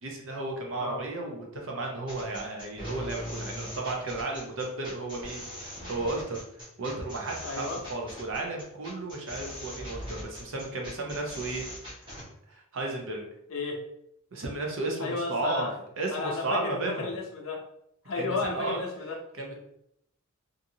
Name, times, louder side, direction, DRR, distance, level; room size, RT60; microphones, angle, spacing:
voice 1, 0.0-5.4 5.9-6.4 6.8-11.6 12.1-12.2 12.5-13.2 14.3-15.7 16.0-17.1 18.2-18.8 19.3-19.5, right 2 dB, 60° right, 1 dB, 0.6 m, -33 dB
sound 1, 2.1-12.3, equal, 20° right, 1.0 m, -41 dB
voice 2, 7.4-7.8 13.5-13.8 15.0-15.7 16.1-17.6 18.1-19.2, left 3 dB, 70° left, 1 dB, 0.6 m, -33 dB
2.7 x 2.5 x 2.7 m, 0.75 s
head